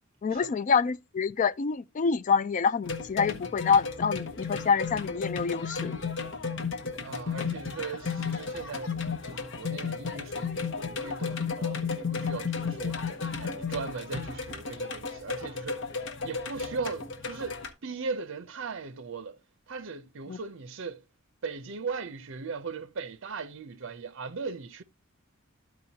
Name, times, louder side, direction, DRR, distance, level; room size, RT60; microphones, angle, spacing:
voice 1, 0.2-5.9 20.3-20.4, left 5 dB, 40° left, 0.3 m, -26 dB
sound 1, 2.8-17.7, left 5 dB, 60° left, 1.0 m, -34 dB
voice 2, 7.0-15.9 16.2-19.4 19.7-21.0 21.4-24.8, right 4 dB, 65° right, 0.6 m, -38 dB
13.0 x 4.8 x 2.8 m
head